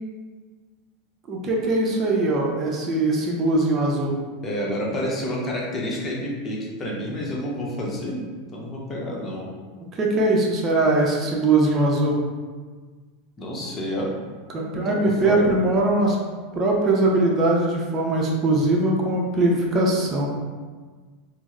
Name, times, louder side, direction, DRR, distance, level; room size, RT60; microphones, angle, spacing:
voice 1, 1.3-4.1 10.0-12.2 14.5-16.2 16.5-20.3, right 2 dB, 35° right, -2 dB, 0.7 m, -21 dB
voice 2, 4.4-8.2 8.5-9.5 13.4-14.1 14.9-15.5, equal, 30° left, -3 dB, 0.9 m, -29 dB
3.4 x 2.1 x 3.1 m, 1.4 s
hypercardioid pair, 90°, 0 cm